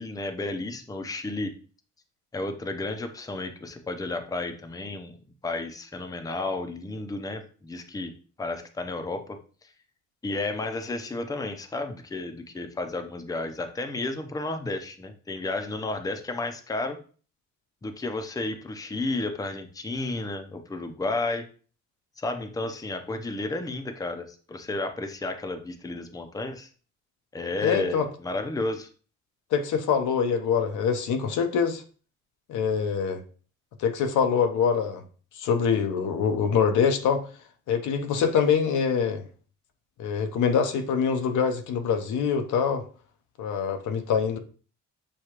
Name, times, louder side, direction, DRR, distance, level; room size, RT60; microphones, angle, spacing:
voice 1, 0.0-1.5 2.3-5.2 5.4-8.1 8.4-9.7 10.2-17.0 17.8-21.5 22.2-26.7 27.3-28.9, left 2 dB, 10° left, 0.5 m, -32 dB
voice 2, 27.6-28.1 29.5-31.8 32.5-33.2 33.8-35.0 35.3-37.2 37.7-39.2 40.0-42.8 43.4-44.4, left 6 dB, 80° left, 0.7 m, -24 dB
6.6 x 2.3 x 2.9 m
cardioid pair, 90°, 30 cm